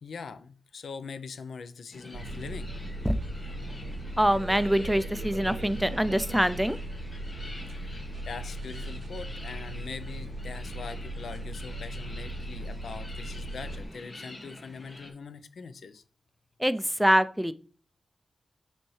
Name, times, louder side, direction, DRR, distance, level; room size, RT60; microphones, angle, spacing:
voice 1, 0.0-2.7 7.7-16.0, left 5 dB, 90° left, 0.5 m, -42 dB
sound 1, 1.9-15.1, left 1 dB, 35° left, 1.2 m, -46 dB
sound 2, 2.1-13.8, right 1 dB, 90° right, 0.7 m, -38 dB
voice 2, 4.2-6.8 16.6-17.5, equal, ahead, 0.3 m, -24 dB
6.9 x 4.4 x 3.2 m
wide cardioid pair, 120°, 0 cm